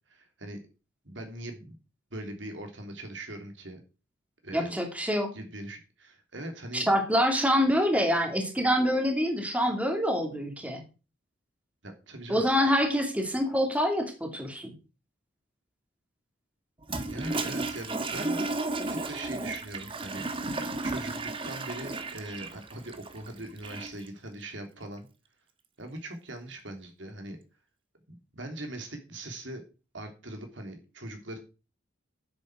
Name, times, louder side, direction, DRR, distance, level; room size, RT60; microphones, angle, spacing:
voice 1, 0.1-0.6 1.0-1.7 2.1-3.8 4.4-4.8 5.3-6.9 11.8-12.5 17.0-18.4 18.9-20.5 20.8-25.1 25.8-27.4 28.3-29.6 29.9-31.4, right 1 dB, 65° right, 5 dB, 3.1 m, -41 dB
voice 2, 4.5-5.3 6.7-10.8 12.3-14.7, equal, 5° right, 3 dB, 2.5 m, -26 dB
Toilet flush, 16.8-24.1, right 2 dB, 25° right, 1.3 m, -34 dB
9.6 x 8.3 x 6.3 m, 0.32 s
head